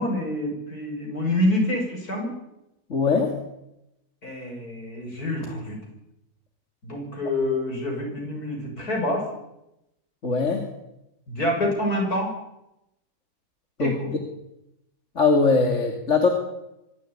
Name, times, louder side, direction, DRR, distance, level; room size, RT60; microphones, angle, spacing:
voice 1, 0.0-2.3 4.2-5.8 6.8-9.3 11.3-12.3 13.8-14.1, left 1 dB, 75° left, 1 dB, 7.5 m, -27 dB
voice 2, 2.9-3.3 10.2-10.6 13.8-14.0 15.2-16.3, left 4 dB, 50° left, 3 dB, 2.7 m, -20 dB
24.5 x 13.0 x 9.7 m, 0.88 s
omnidirectional pair, 1.6 m